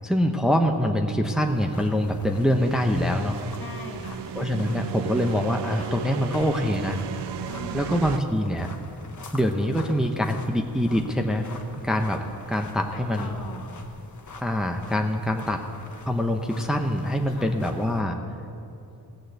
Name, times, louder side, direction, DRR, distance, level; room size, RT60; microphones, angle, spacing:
voice 1, 0.0-3.4 4.3-7.0 7.7-8.7 9.3-11.5 11.8-13.4 14.4-15.6 16.1-18.2, equal, ahead, 3 dB, 0.8 m, -24 dB
sound 1, 1.4-18.0, left 3 dB, 45° left, 1.4 m, -46 dB
sound 2, 2.3-8.2, right 10 dB, 90° right, 0.5 m, -36 dB
voice 2, 3.5-4.3 7.4-8.0 12.9-13.8 17.3-17.6, left 4 dB, 60° left, 2 dB, 1.9 m, -41 dB
17.0 x 6.4 x 7.9 m, 2.7 s
cardioid pair, 80°, 40 cm